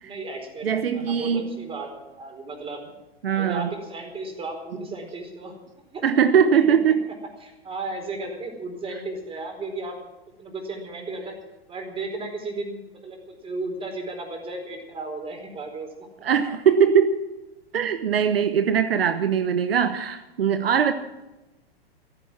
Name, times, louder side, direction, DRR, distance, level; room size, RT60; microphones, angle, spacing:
voice 1, 0.0-2.9 3.3-5.5 5.9-6.1 6.5-6.8 7.4-10.0 10.4-11.3 11.7-16.1, right 2 dB, 20° right, 4 dB, 4.6 m, -34 dB
voice 2, 0.6-1.6 3.2-3.7 6.0-7.1 16.2-17.2 17.7-20.9, right 7 dB, 70° right, 10 dB, 1.2 m, -21 dB
15.0 x 15.0 x 6.2 m, 1.0 s
figure-of-eight pair, 105°, 31 cm